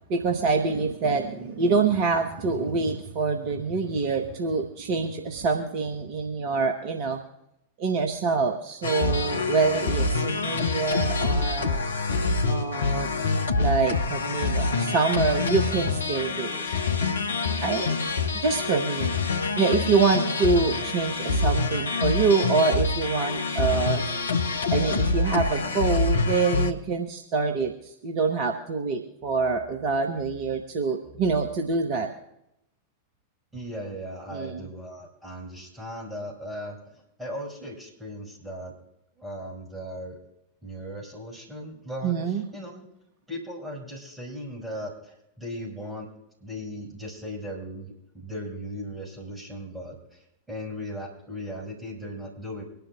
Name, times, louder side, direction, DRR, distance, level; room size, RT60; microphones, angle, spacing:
voice 1, 0.1-7.2 7.8-11.8 12.5-13.1 13.6-17.1 17.6-17.9 18.4-19.1 19.6-24.1 24.7-32.1 34.3-34.7 42.0-42.4, right 4 dB, 45° right, 4 dB, 1.2 m, -26 dB
sound 1, 8.8-26.7, left 3 dB, 70° left, 0.8 m, -26 dB
voice 2, 33.5-38.7 39.2-40.2 40.6-42.9 43.3-46.1 46.4-52.6, equal, 10° right, -3 dB, 5.7 m, -37 dB
24.5 x 11.5 x 2.4 m, 0.81 s
figure-of-eight pair, 90°, 0 cm